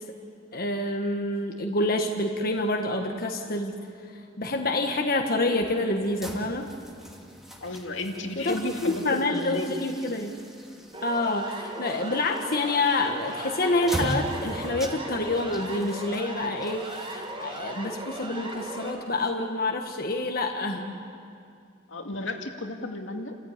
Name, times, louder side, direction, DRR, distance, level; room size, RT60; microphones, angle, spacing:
voice 1, 0.5-3.8 4.1-6.7 8.4-10.3 11.0-21.0, left 2 dB, 50° left, 3 dB, 1.5 m, -27 dB
sound 1, 6.0-19.1, equal, ahead, 2.7 m, -40 dB
voice 2, 7.6-9.8 21.9-23.4, left 2 dB, 80° left, 3 dB, 2.3 m, -33 dB
Siren, 10.9-18.9, right 1 dB, 25° right, 3.9 m, -37 dB
29.5 x 14.5 x 9.6 m, 2.4 s
head